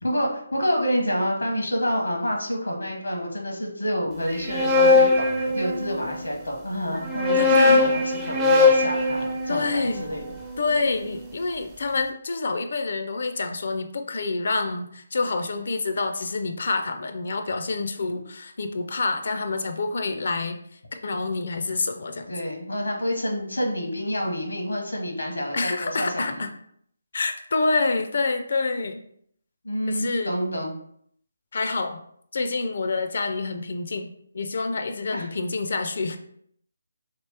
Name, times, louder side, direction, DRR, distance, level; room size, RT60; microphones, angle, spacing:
voice 1, 0.0-10.2 18.1-18.2 22.3-26.4 29.6-30.7 35.1-35.3, equal, 85° left, 0 dB, 1.0 m, -28 dB
sound 1, 4.3-6.2 7.0-11.1, left 3 dB, 10° right, 0.4 m, -21 dB
voice 2, 7.4-8.0 9.5-10.1 10.6-20.6 20.9-22.3 25.5-26.5 27.1-29.0 29.9-30.4 31.5-32.0 32.3-34.1 34.3-36.2, left 3 dB, 55° left, 7 dB, 0.4 m, -27 dB
2.9 x 2.9 x 3.3 m, 0.67 s
figure-of-eight pair, 150°, 0 cm